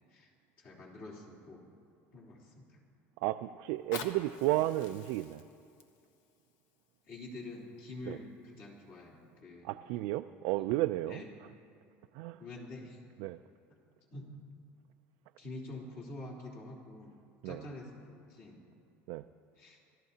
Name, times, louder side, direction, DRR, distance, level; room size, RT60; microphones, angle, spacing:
voice 1, 0.6-1.6 2.1-2.8 7.1-9.7 10.5-10.7 11.1-11.4 12.4-13.0 14.1-14.3 15.4-17.2 17.4-18.6 19.5-19.8, left 2 dB, 50° left, -4 dB, 3.3 m, -47 dB
voice 2, 3.2-5.4 8.1-8.2 9.6-11.2 12.1-12.4 13.2-13.4 17.4-17.6 19.1-19.2, right 16 dB, 75° right, 8 dB, 0.3 m, -33 dB
Fire, 3.7-8.6 9.3-9.4, left 6 dB, 65° left, 1.1 m, -49 dB
25.5 x 13.5 x 2.8 m, 2.5 s
cardioid pair, 150°, 5 cm